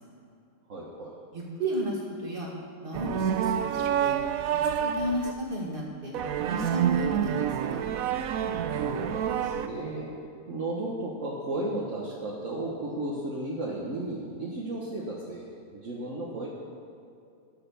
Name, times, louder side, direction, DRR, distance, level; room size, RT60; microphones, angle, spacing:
voice 1, 0.7-1.2 8.7-10.1 10.5-16.5, right 2 dB, 55° right, -4 dB, 1.7 m, -34 dB
voice 2, 1.3-2.5 2.8-4.2 4.7-6.1 6.5-7.8, right 1 dB, 35° right, -2 dB, 2.2 m, -33 dB
sound 1, 2.9-5.3 6.1-9.7, right 9 dB, 70° right, 1.0 m, -28 dB
13.5 x 6.8 x 6.9 m, 2.5 s
omnidirectional pair, 1.6 m